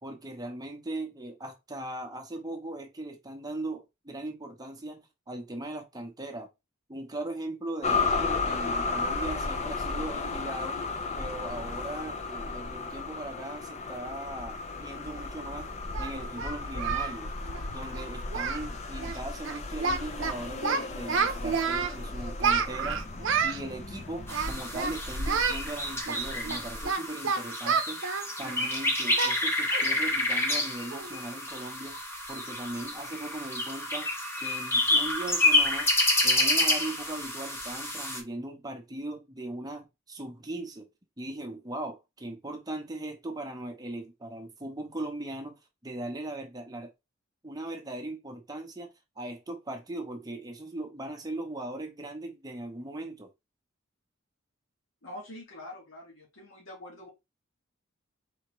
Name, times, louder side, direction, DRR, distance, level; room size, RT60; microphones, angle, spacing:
voice 1, 0.0-6.5 6.9-10.8 11.1-15.7 16.0-17.3 17.7-23.0 23.4-28.1 28.4-32.0 32.3-34.1 34.4-35.9 36.2-40.9 41.2-46.9 47.4-53.3, right 1 dB, 20° right, 0.8 m, -39 dB
sound 1, 7.8-26.9, left 3 dB, 35° left, 0.5 m, -34 dB
Singing, 15.1-15.2 15.9-17.2 17.4-17.6 17.9-18.1 18.3-18.7 19.0-19.2 19.4-20.3 20.6-21.9 22.4-23.6 24.3-24.9 25.3-25.6 26.1-28.7 29.2-29.4 29.7-29.9 30.3-30.4 30.9-31.2, right 5 dB, 65° right, 0.6 m, -29 dB
sound 2, 24.3-38.2, left 1 dB, 10° left, 0.9 m, -29 dB
voice 2, 55.0-57.1, left 1 dB, 75° left, 2.0 m, -45 dB
4.4 x 3.5 x 3.1 m
head